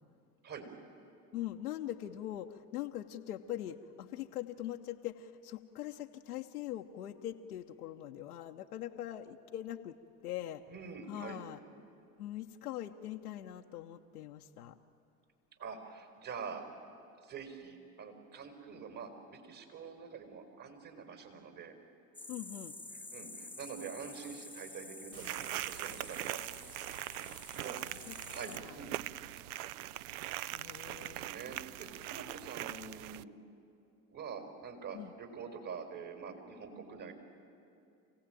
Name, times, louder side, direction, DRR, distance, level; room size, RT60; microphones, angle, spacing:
voice 1, 1.3-10.0 10.2-10.6 11.1-11.6 12.2-14.8 22.3-22.8 27.3-27.4 27.8-28.1 28.5-28.8 30.5-31.3 34.9-35.1, left 12 dB, 85° left, 3 dB, 0.9 m, -42 dB
voice 2, 10.7-11.4 15.6-16.7 17.2-21.7 23.1-26.4 27.6-28.9 30.3-33.3 34.1-37.1, right 6 dB, 45° right, 5 dB, 4.7 m, -46 dB
sound 1, 22.1-28.6, left 2 dB, 5° left, 0.9 m, -50 dB
sound 2, 25.1-33.2, right 15 dB, 75° right, 0.5 m, -42 dB
27.0 x 16.5 x 9.0 m, 2.6 s
hypercardioid pair, 70°, 44 cm